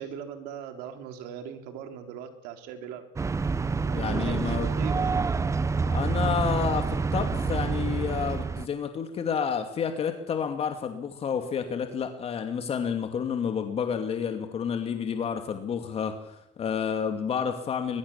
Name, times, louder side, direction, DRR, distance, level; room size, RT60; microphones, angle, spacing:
voice 1, 0.0-3.0 3.8-5.1, right 8 dB, 70° right, 6 dB, 3.7 m, -39 dB
sound 1, 3.2-8.7, right 4 dB, 20° right, 0.9 m, -27 dB
voice 2, 3.9-4.7 5.8-18.0, left 7 dB, 40° left, 6 dB, 2.5 m, -30 dB
22.0 x 22.0 x 7.1 m, 0.81 s
supercardioid pair, 100°, 16 cm